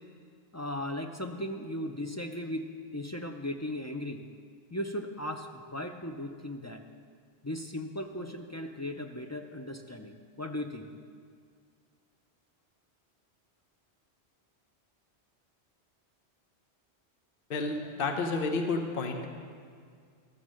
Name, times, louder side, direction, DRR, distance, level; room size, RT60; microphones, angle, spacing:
voice 1, 0.5-2.7 2.9-4.2 4.7-6.8 7.4-10.9, left 1 dB, 25° left, 4 dB, 0.3 m, -37 dB
voice 2, 17.5-19.2, left 3 dB, 55° left, 4 dB, 1.0 m, -30 dB
13.0 x 7.2 x 6.3 m, 2.1 s
omnidirectional pair, 1.1 m